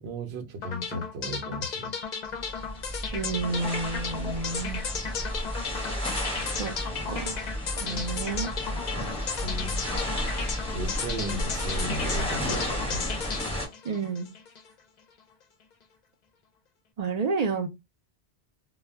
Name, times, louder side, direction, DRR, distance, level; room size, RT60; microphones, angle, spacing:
voice 1, 0.0-1.9 7.8-8.1 9.4-9.8 10.7-13.1, right 1 dB, 85° right, 0.8 m, -36 dB
sound 1, 0.6-14.7, left 5 dB, 55° left, 0.5 m, -35 dB
sound 2, 2.3-13.7, equal, 5° left, 0.9 m, -32 dB
voice 2, 3.1-4.8 6.6-6.7 7.1-7.4 7.8-8.5 13.8-14.3 17.0-17.7, right 4 dB, 55° right, 0.5 m, -30 dB
2.1 x 2.1 x 3.3 m
omnidirectional pair, 1.0 m